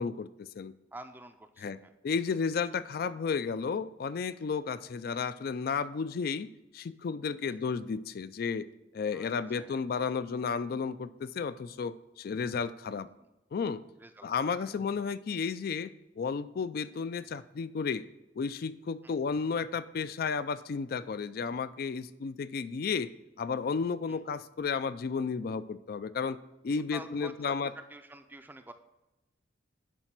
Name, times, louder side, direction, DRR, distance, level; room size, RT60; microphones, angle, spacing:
voice 1, 0.0-0.7 1.6-1.8 2.0-8.7 8.9-13.1 13.5-13.8 14.2-18.0 18.4-23.1 23.4-26.4 26.6-27.7, left 5 dB, 55° left, 14 dB, 0.4 m, -33 dB
voice 2, 0.9-1.9 7.4-7.6 9.1-9.8 13.2-13.3 14.0-14.8 19.0-19.1 24.1-24.2 26.9-27.6 27.9-28.7, right 2 dB, 10° right, 7 dB, 0.4 m, -48 dB
10.5 x 4.0 x 6.0 m, 0.97 s
head